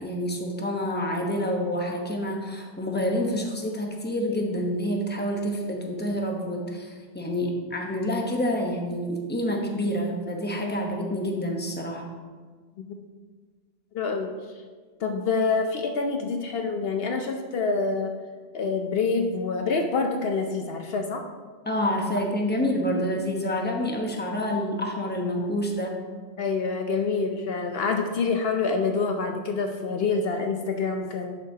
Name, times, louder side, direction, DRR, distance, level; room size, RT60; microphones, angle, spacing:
voice 1, 0.0-12.1 21.6-25.9, equal, 10° left, 0 dB, 1.0 m, -28 dB
voice 2, 13.9-14.4 15.0-18.1 18.5-21.2 26.4-31.4, left 4 dB, 65° left, 4 dB, 0.8 m, -26 dB
11.0 x 7.1 x 2.8 m, 1.5 s
omnidirectional pair, 1.1 m